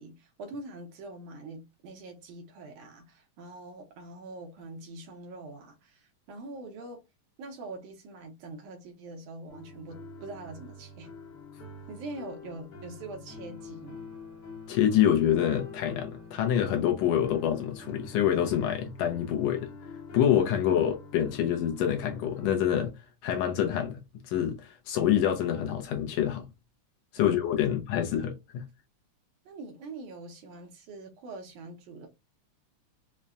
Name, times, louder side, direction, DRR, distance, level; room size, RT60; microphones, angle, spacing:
voice 1, 0.0-7.0 7.4-11.1 11.9-14.1 20.5-20.7 27.2-27.4 29.5-32.1, right 2 dB, 75° right, 2.1 m, -44 dB
sound 1, 9.5-22.5, left 3 dB, 60° left, 1.1 m, -46 dB
voice 2, 14.7-19.7 20.1-22.9 23.2-24.0 24.3-26.4 27.1-28.6, left 10 dB, 80° left, 1.5 m, -26 dB
5.6 x 2.1 x 2.4 m
omnidirectional pair, 3.8 m